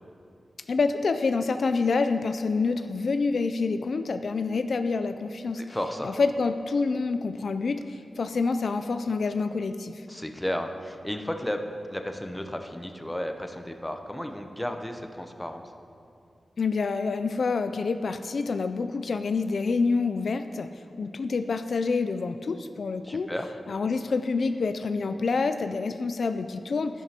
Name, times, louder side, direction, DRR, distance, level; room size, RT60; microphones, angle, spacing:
voice 1, 0.7-5.6 6.0-10.1 16.6-20.7 21.0-23.3 23.7-27.0, left 4 dB, 60° left, 9 dB, 0.3 m, -27 dB
voice 2, 5.5-6.1 10.1-15.6 23.0-23.5, left 1 dB, 10° left, 5 dB, 0.6 m, -33 dB
12.5 x 11.0 x 2.9 m, 2.5 s
wide cardioid pair, 130°, 0 cm